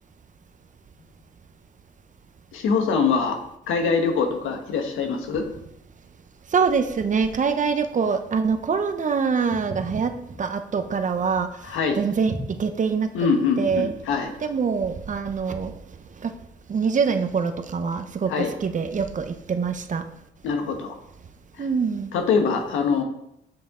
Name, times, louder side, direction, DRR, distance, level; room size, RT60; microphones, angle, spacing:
voice 1, 2.5-3.4 3.7-5.4 11.6-12.0 13.1-14.3 18.3-18.5 20.4-20.9 21.6-21.7 22.1-23.0, left 5 dB, 85° left, 4 dB, 1.3 m, -23 dB
voice 2, 6.5-12.3 12.6-13.1 13.6-13.9 14.4-15.7 16.2-16.3 16.7-20.0 21.6-22.1, right 5 dB, 40° right, 8 dB, 0.8 m, -24 dB
Walk footsteps, 9.5-14.0, right 2 dB, 65° right, 1.7 m, -38 dB
7.7 x 6.8 x 3.7 m, 0.78 s
cardioid pair, 90°, 20 cm